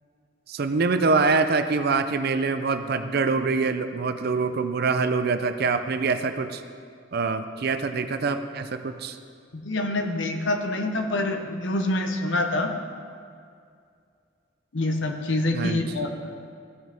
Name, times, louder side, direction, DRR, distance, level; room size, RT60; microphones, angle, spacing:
voice 1, 0.5-6.6 7.1-9.2 15.5-15.8, right 4 dB, 50° right, 9 dB, 0.5 m, -25 dB
voice 2, 9.5-12.7 14.7-16.3, left 2 dB, 70° left, 4 dB, 0.9 m, -26 dB
15.0 x 6.3 x 3.5 m, 2.3 s
head